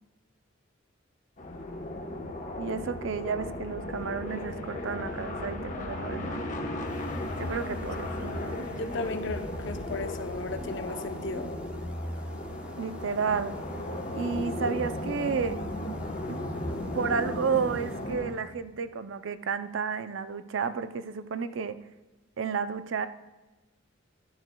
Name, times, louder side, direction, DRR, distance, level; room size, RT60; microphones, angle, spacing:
sound 1, 1.4-18.3, left 1 dB, 40° left, 1.0 m, -36 dB
voice 1, 2.6-6.4 7.4-8.7 12.8-13.6 14.1-15.6 16.3-16.4 16.9-21.8 22.4-23.1, right 6 dB, 65° right, 12 dB, 0.5 m, -31 dB
sound 2, 6.8-18.6, equal, 5° right, 0.6 m, -42 dB
voice 2, 8.8-11.5, left 3 dB, 60° left, 9 dB, 0.7 m, -36 dB
12.0 x 10.5 x 2.3 m, 1.2 s
head